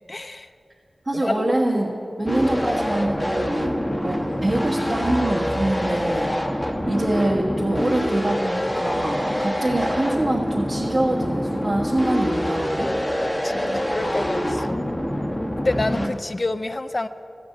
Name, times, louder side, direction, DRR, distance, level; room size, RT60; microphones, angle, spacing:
voice 1, 0.1-0.5 1.1-1.4 13.4-14.8 15.6-17.1, left 2 dB, 50° left, 11 dB, 0.4 m, -28 dB
voice 2, 1.0-1.9 2.2-3.8 4.0-12.9 13.5-13.8, right 1 dB, 50° right, -4 dB, 1.4 m, -24 dB
sound 1, 2.3-16.1, equal, 15° left, 1.0 m, -25 dB
13.5 x 5.2 x 8.3 m, 2.7 s
cardioid pair, 45°, 0 cm